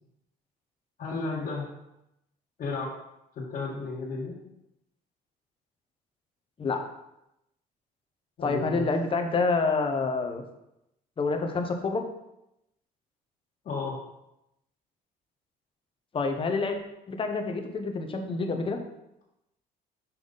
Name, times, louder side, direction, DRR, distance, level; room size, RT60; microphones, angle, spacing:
voice 1, 1.0-1.7 2.6-2.9 3.4-4.3 8.4-8.9 13.6-14.0, left 3 dB, 55° left, -6 dB, 1.7 m, -33 dB
voice 2, 8.4-10.4 11.2-12.0 16.1-16.8 17.1-18.8, left 4 dB, 30° left, 4 dB, 1.0 m, -27 dB
5.8 x 5.3 x 4.0 m, 0.85 s
cardioid pair, 110°, 17 cm